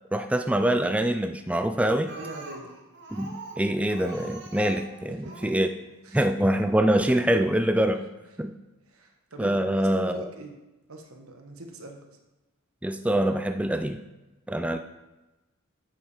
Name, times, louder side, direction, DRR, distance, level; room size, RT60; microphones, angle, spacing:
voice 1, 0.1-2.1 3.1-5.2 5.4-5.7 6.1-8.0 8.4-8.5 9.4-10.2 12.8-14.0 14.5-14.8, right 1 dB, 5° right, 8 dB, 0.3 m, -24 dB
Speech, 2.1-5.6 6.5-6.6 7.0-7.1 7.4-7.5, right 3 dB, 55° right, 1.6 m, -43 dB
voice 2, 2.1-2.7 5.1-5.5 6.0-6.2 7.9-8.0 8.9-10.5 10.9-12.1, right 1 dB, 85° right, 4 dB, 1.3 m, -42 dB
8.0 x 7.2 x 4.9 m, 1.0 s
head